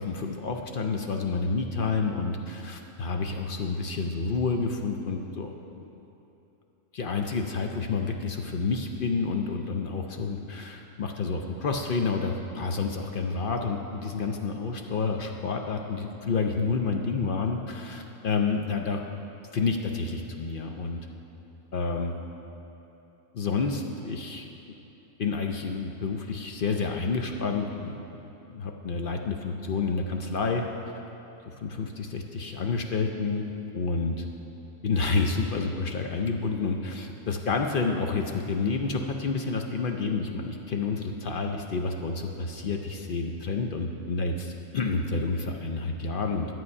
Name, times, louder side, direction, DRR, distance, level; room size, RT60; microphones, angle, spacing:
voice 1, 0.0-5.5 5.8-5.9 6.9-19.0 19.5-21.0 21.7-22.2 23.3-24.7 25.2-27.9 28.5-30.9 31.5-34.2 34.8-46.5, left 4 dB, 55° left, 3 dB, 0.6 m, -29 dB
11.0 x 7.6 x 5.4 m, 3.0 s
omnidirectional pair, 1.4 m